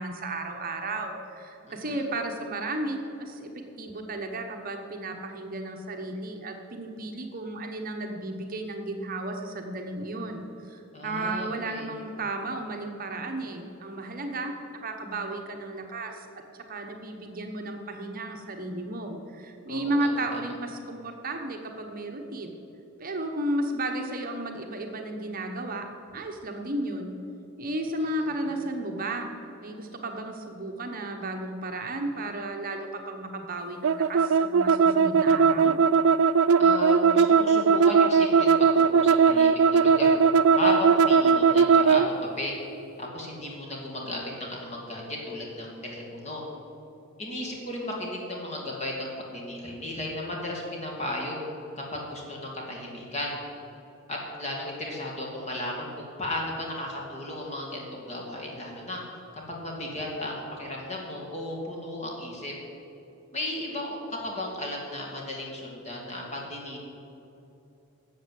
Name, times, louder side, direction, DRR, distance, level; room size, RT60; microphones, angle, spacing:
voice 1, 0.0-16.3 16.7-22.6 23.0-25.9 26.1-27.2 27.6-29.3 29.6-35.7, right 2 dB, 40° right, 3 dB, 1.0 m, -33 dB
voice 2, 1.6-2.0 10.9-11.9 19.7-20.4 28.4-28.7 36.6-40.2 40.5-42.6 43.0-46.4 47.2-51.4 51.8-53.4 54.1-59.0 59.5-62.5 63.3-64.0 64.2-66.8, left 1 dB, 30° left, -1 dB, 2.5 m, -35 dB
sound 1, 33.8-42.1, right 5 dB, 85° right, 0.4 m, -19 dB
12.0 x 7.5 x 7.6 m, 2.8 s
head